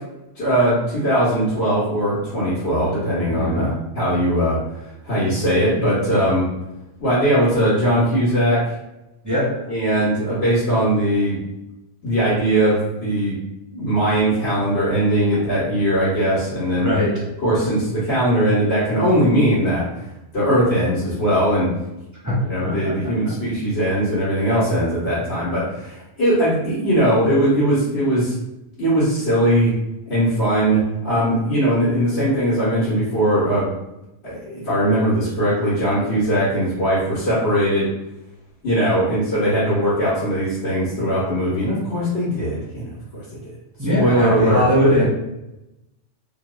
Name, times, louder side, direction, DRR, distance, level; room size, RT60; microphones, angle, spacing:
voice 1, 0.3-4.6 5.0-6.5 7.0-8.6 9.7-11.4 12.0-13.4 13.7-16.9 17.4-19.8 20.3-21.7 22.5-28.3 28.8-29.7 30.1-33.7 34.2-37.9 38.6-43.2 43.9-44.9, right 1 dB, 80° left, -12 dB, 1.3 m, -20 dB
voice 2, 3.3-3.7 9.2-9.5 16.7-17.1 22.2-22.3 22.6-22.9 23.2-23.3 43.8-45.1, equal, 20° right, -7 dB, 0.6 m, -20 dB
2.9 x 2.1 x 2.3 m, 0.93 s
omnidirectional pair, 1.1 m